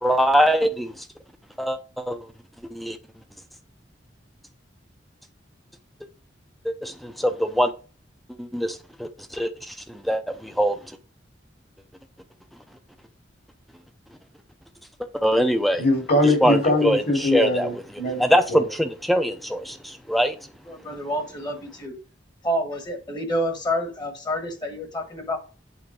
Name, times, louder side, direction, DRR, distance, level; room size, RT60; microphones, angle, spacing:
voice 1, 0.0-0.9 1.6-2.2 2.7-3.0 6.6-7.7 8.4-10.8 15.1-15.8 16.4-17.7 18.2-20.4, equal, ahead, 0.6 m, -23 dB
voice 2, 15.8-18.2 18.5-18.7, left 1 dB, 55° left, 2.7 m, -22 dB
voice 3, 20.6-22.0 22.4-25.4, equal, 20° left, 1.3 m, -28 dB
8.3 x 3.9 x 4.8 m
head